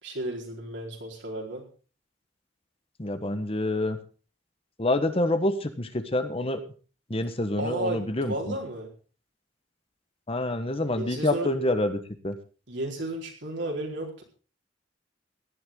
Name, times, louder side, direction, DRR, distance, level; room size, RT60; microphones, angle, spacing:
voice 1, 0.0-1.6 7.6-8.9 10.9-11.5 12.7-14.2, right 1 dB, 75° right, -1 dB, 4.5 m, -33 dB
voice 2, 3.0-4.0 4.8-6.6 7.1-8.5 10.3-12.0 12.2-12.3, left 1 dB, 30° left, 9 dB, 1.4 m, -27 dB
17.5 x 11.5 x 3.9 m, 0.37 s
head